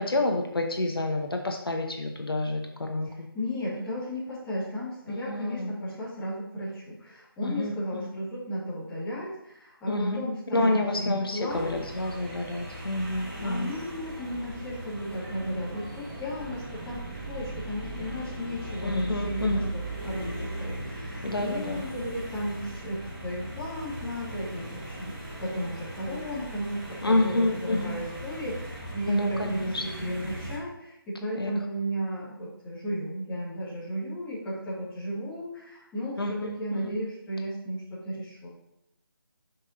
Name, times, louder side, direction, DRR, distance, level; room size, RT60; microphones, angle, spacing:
voice 1, 0.0-3.3 5.1-5.7 7.4-8.1 9.9-10.2 10.5-13.7 18.8-19.7 21.2-21.8 27.0-27.9 29.1-30.1 31.3-31.5 36.2-37.0, left 2 dB, 70° left, 3 dB, 1.1 m, -29 dB
voice 2, 3.0-11.7 13.4-38.5, equal, 10° left, -10 dB, 2.2 m, -34 dB
sound 1, 11.5-30.6, right 1 dB, 20° right, 2.1 m, -38 dB
9.1 x 5.8 x 2.8 m, 0.83 s
figure-of-eight pair, 155°, 13 cm